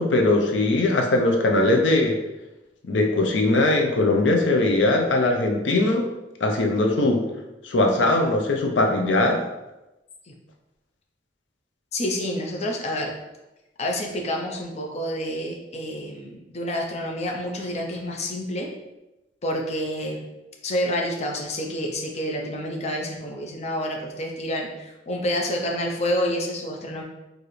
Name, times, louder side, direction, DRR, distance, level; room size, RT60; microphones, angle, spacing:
voice 1, 0.0-2.2 2.9-6.1 6.4-7.2 7.6-9.4, left 2 dB, 85° left, 2 dB, 0.6 m, -20 dB
voice 2, 11.9-13.1 13.8-18.7 19.4-20.2 20.6-27.0, equal, 35° left, 0 dB, 0.6 m, -28 dB
4.8 x 2.6 x 3.1 m, 0.99 s
head